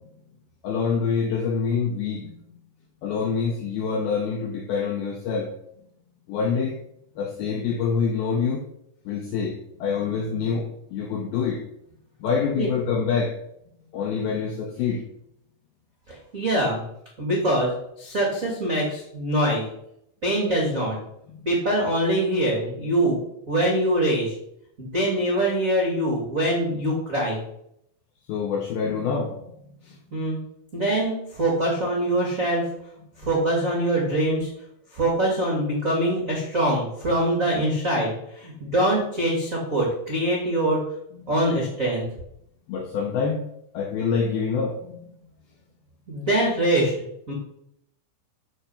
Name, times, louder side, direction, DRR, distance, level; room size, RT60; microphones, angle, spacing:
voice 1, 0.6-2.3 3.0-5.5 6.3-6.8 7.2-8.7 9.1-11.6 12.2-13.3 13.9-15.0 17.4-17.5 28.3-29.4 41.2-41.3 42.7-43.4 43.7-45.1, left 5 dB, 80° left, 2 dB, 2.2 m, -26 dB
voice 2, 16.1-16.8 17.2-17.7 18.0-19.6 20.2-21.0 21.4-23.2 23.5-24.3 24.8-27.4 30.1-30.4 30.7-32.6 33.2-34.5 34.9-40.8 41.3-42.1 46.1-46.9 47.3-47.4, right 1 dB, 75° right, -3 dB, 0.7 m, -23 dB
11.0 x 4.3 x 5.6 m, 0.75 s
omnidirectional pair, 5.5 m